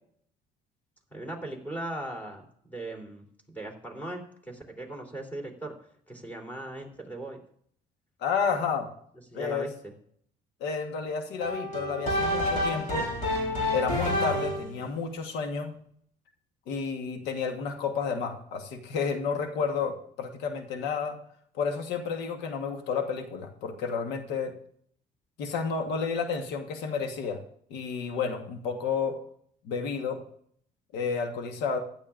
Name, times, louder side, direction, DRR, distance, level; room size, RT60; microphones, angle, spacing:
voice 1, 1.1-5.7 6.1-7.4 9.3-9.9, right 1 dB, 10° left, -1 dB, 3.4 m, -39 dB
voice 2, 8.2-8.9 9.3-9.7 10.6-13.1 13.7-15.7 16.7-21.2 21.5-24.5 25.4-27.4 27.7-29.2 29.6-30.2 30.9-31.8, left 5 dB, 90° left, 5 dB, 1.3 m, -31 dB
sound 1, 11.4-14.8, left 1 dB, 45° left, 3.7 m, -28 dB
16.0 x 12.0 x 2.5 m, 0.63 s
cardioid pair, 110°, 17 cm